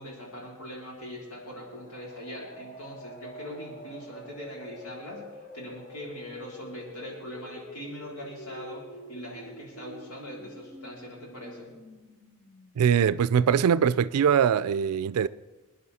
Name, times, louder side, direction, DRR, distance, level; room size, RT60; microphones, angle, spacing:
voice 1, 0.0-5.2 5.5-11.7, equal, 85° left, 3.7 m, -41 dB
sound 1, 1.5-13.2, equal, 40° left, 1.3 m, -47 dB
voice 2, 12.8-15.3, right 7 dB, 90° right, 0.4 m, -22 dB
21.5 x 10.0 x 4.2 m
head